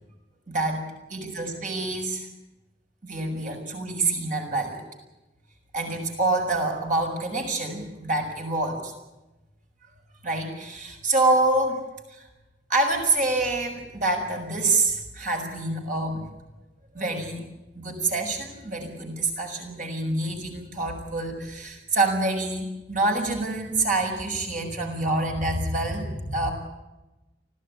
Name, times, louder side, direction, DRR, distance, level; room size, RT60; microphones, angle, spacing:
voice 1, 0.5-2.3 3.0-4.8 5.7-8.9 10.2-11.8 12.1-12.2 12.7-16.2 16.9-17.5 17.7-26.5, right 2 dB, 45° right, 3 dB, 6.4 m, -26 dB
25.0 x 16.0 x 9.9 m, 1.0 s
head